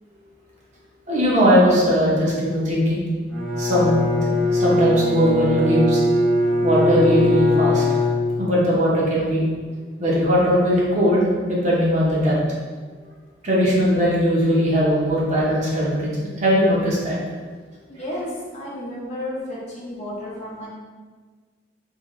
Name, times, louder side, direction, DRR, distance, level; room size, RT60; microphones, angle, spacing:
voice 1, 1.1-3.0 3.6-4.0 4.3-6.0 6.6-7.8 8.4-9.4 10.0-12.4 13.4-17.2, equal, 40° right, -6 dB, 0.8 m, -19 dB
Bowed string instrument, 3.3-8.8, left 1 dB, 5° left, 0.8 m, -21 dB
voice 2, 17.9-20.7, left 1 dB, 40° left, -6 dB, 0.9 m, -32 dB
3.6 x 2.8 x 3.1 m, 1.5 s
head